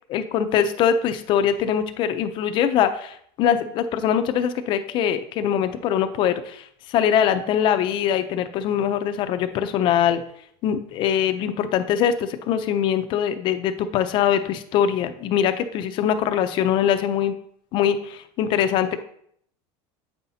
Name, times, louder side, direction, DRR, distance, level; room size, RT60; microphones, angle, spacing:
voice 1, 0.1-10.2 10.6-17.3 17.7-19.0, left 9 dB, 35° left, 9 dB, 0.4 m, -22 dB
8.1 x 5.6 x 2.7 m, 0.67 s
cardioid pair, 170°, 14 cm